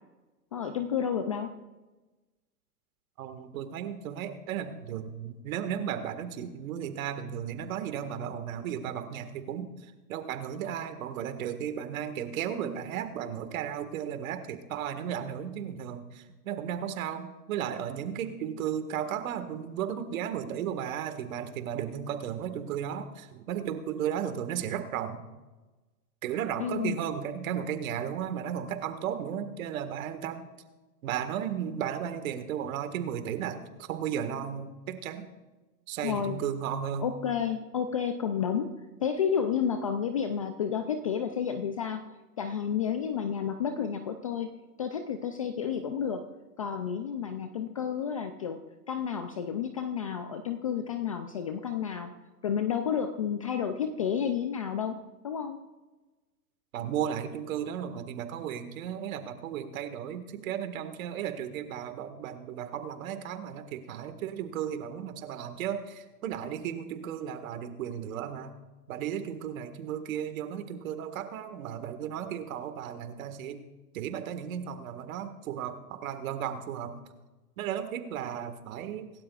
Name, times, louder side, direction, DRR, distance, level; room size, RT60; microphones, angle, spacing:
voice 1, 0.5-1.5 26.6-27.0 36.0-36.4 37.0-42.0 42.4-44.5 44.8-46.2 46.6-48.6 48.9-52.1 52.4-55.0 55.2-55.6, left 7 dB, 25° left, 8 dB, 0.3 m, -31 dB
voice 2, 3.2-25.2 26.2-30.5 31.0-35.3 35.9-37.1 56.7-68.5 68.9-73.6 73.9-77.0 77.6-79.1, right 9 dB, 55° right, 9 dB, 1.8 m, -35 dB
25.5 x 12.5 x 2.4 m, 1.2 s
hypercardioid pair, 125°, 48 cm